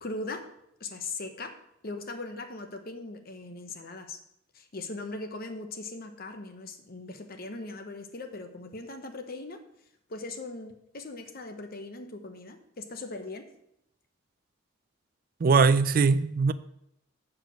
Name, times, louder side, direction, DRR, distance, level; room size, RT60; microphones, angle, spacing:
voice 1, 0.0-0.5 0.8-1.5 1.8-4.2 4.5-9.6 10.1-13.5, left 2 dB, 50° left, 1.0 m, -39 dB
voice 2, 15.4-16.5, right 4 dB, 45° right, 0.4 m, -21 dB
8.5 x 4.9 x 6.3 m
head